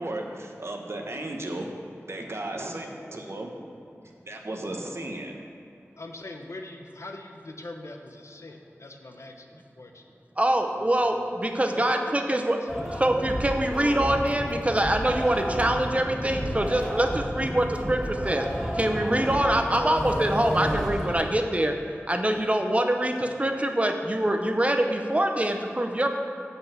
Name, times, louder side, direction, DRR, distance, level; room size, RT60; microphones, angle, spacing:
voice 1, 0.0-3.8 4.3-5.4, right 1 dB, 60° right, 2 dB, 1.1 m, -35 dB
voice 2, 6.0-10.0 11.9-12.2, left 2 dB, 70° left, 4 dB, 0.8 m, -42 dB
voice 3, 10.4-12.6 12.9-18.5 18.7-21.7 22.1-26.2, right 1 dB, 25° right, 4 dB, 0.9 m, -24 dB
sound 1, 12.7-21.2, equal, ahead, 2.3 m, -31 dB
7.8 x 5.5 x 7.4 m, 2.6 s
wide cardioid pair, 60°, 5 cm